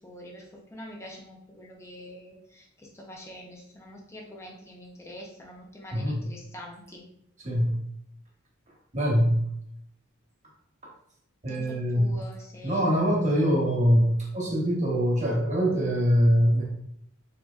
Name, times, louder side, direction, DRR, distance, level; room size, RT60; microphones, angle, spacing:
voice 1, 0.0-7.1 11.5-13.2, equal, 15° left, -1 dB, 0.6 m, -45 dB
voice 2, 8.9-9.4 11.4-12.1 12.6-16.6, equal, 35° right, -3 dB, 1.1 m, -23 dB
4.0 x 2.9 x 2.4 m, 0.73 s
head